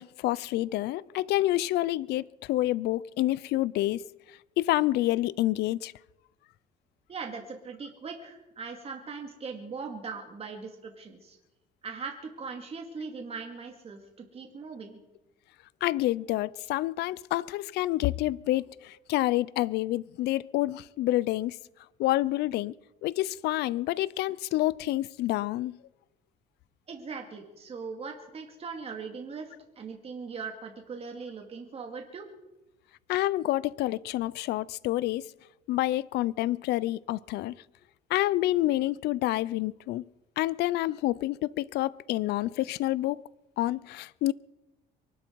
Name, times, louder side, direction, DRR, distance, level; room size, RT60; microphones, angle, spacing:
voice 1, 0.0-4.0 4.6-5.9 15.8-21.6 22.0-22.7 23.0-25.8 33.1-35.2 35.7-37.5 38.1-40.0 40.4-43.2 43.6-44.3, left 16 dB, 80° left, 0.5 m, -28 dB
voice 2, 7.1-11.4 11.8-15.0 26.9-29.5 29.8-32.3, right 5 dB, 35° right, 2.4 m, -40 dB
23.5 x 12.0 x 4.6 m
cardioid pair, 110°, 17 cm